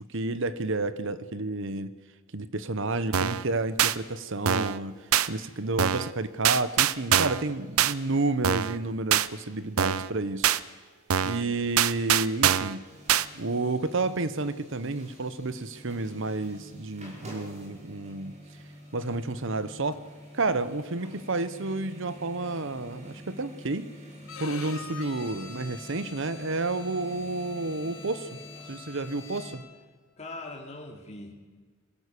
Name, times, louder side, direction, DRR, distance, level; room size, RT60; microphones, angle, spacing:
voice 1, 0.1-1.9 2.3-5.0 5.3-10.5 11.2-12.8 13.3-18.4 18.9-20.0 20.3-23.9 24.4-28.3 28.7-29.6, right 2 dB, 60° right, 14 dB, 1.0 m, -30 dB
sound 1, 3.1-3.4 3.8-3.9 4.5-4.8 5.1-5.3 5.8-6.1 6.4-7.4 7.8-7.9 8.4-8.8 9.1-9.3 9.8-10.1 10.4-10.6 11.1-11.4 11.8-12.7 13.1-13.3, right 10 dB, 85° right, 0.7 m, -23 dB
voice 2, 11.2-11.6 30.2-31.3, left 2 dB, 30° left, 0 dB, 2.9 m, -41 dB
sound 2, 12.8-29.5, equal, 35° right, 5.8 m, -47 dB
Bowed string instrument, 24.2-29.8, left 6 dB, 75° left, 3.6 m, -45 dB
23.0 x 15.5 x 8.4 m, 1.4 s
head